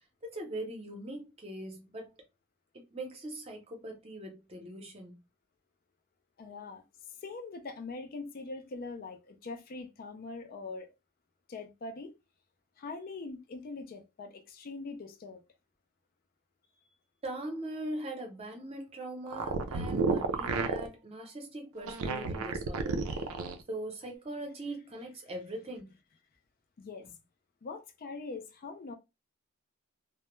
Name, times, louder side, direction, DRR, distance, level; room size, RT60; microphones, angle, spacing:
voice 1, 0.2-2.1 2.7-5.2 17.2-23.2 23.7-25.9, right 1 dB, 30° right, 0.7 m, -41 dB
voice 2, 6.4-6.8 7.2-10.9 11.5-12.1 12.8-15.4 26.8-27.1 27.6-28.9, left 3 dB, 45° left, 0.4 m, -42 dB
sound 1, 19.3-20.9 21.8-23.6, right 4 dB, 80° right, 0.4 m, -31 dB
2.2 x 2.0 x 3.0 m
head